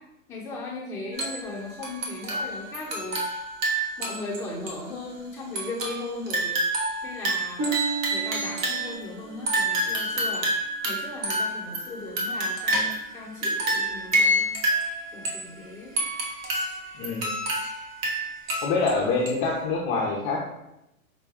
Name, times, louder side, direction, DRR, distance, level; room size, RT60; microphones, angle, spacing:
voice 1, 0.3-3.4 4.0-6.6 7.0-7.7 8.1-10.5 10.8-14.5 15.1-16.0, left 2 dB, 5° left, -7 dB, 0.9 m, -37 dB
sound 1, 1.1-1.6 1.8-4.4 4.7-4.8 5.5-9.0 9.5-13.1 13.4-15.4 16.0-18.9 19.3-19.4, right 1 dB, 65° right, 1.2 m, -28 dB
Harp, 7.6-11.3 11.9-12.3 12.9-13.0, right 4 dB, 20° right, 0.5 m, -35 dB
voice 2, 17.0-17.3 18.6-20.5, left 3 dB, 35° left, -3 dB, 0.6 m, -25 dB
5.1 x 2.2 x 3.5 m, 0.85 s
hypercardioid pair, 145°, 43 cm